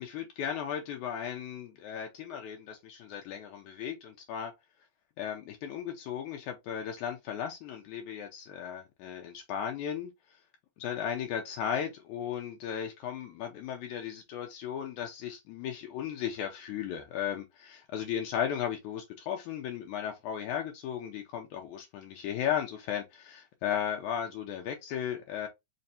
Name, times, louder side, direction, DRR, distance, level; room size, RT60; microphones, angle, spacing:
voice 1, 0.0-4.5 5.2-10.1 10.8-25.5, left 9 dB, 80° left, 2.0 m, -36 dB
5.3 x 2.5 x 2.6 m
omnidirectional pair, 3.7 m